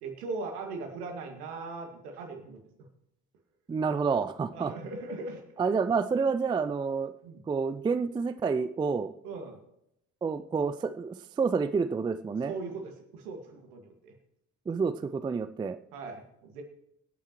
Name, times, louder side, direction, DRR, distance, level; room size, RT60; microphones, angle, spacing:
voice 1, 0.0-2.9 4.5-5.4 7.2-7.4 9.2-9.6 12.5-14.1 15.9-16.6, right 3 dB, 70° right, 4 dB, 2.1 m, -39 dB
voice 2, 3.7-4.7 5.6-7.1 7.5-9.1 10.2-12.5 14.7-15.8, right 5 dB, 10° right, 12 dB, 0.4 m, -29 dB
25.5 x 9.0 x 3.1 m, 0.80 s
figure-of-eight pair, 50°, 47 cm